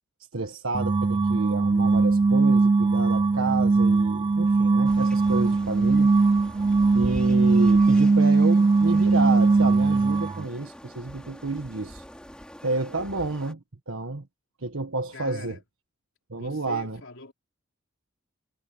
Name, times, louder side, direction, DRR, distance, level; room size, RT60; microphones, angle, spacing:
voice 1, 0.3-6.1 6.9-12.0 12.6-14.3 14.6-15.6 16.3-17.0, right 3 dB, 85° right, 1.5 m, -30 dB
sound 1, 0.7-10.5, right 3 dB, 25° right, 0.3 m, -20 dB
sound 2, 4.8-13.5, equal, 5° left, 5.6 m, -44 dB
voice 2, 15.1-15.6 16.3-17.3, left 2 dB, 75° left, 4.1 m, -42 dB
head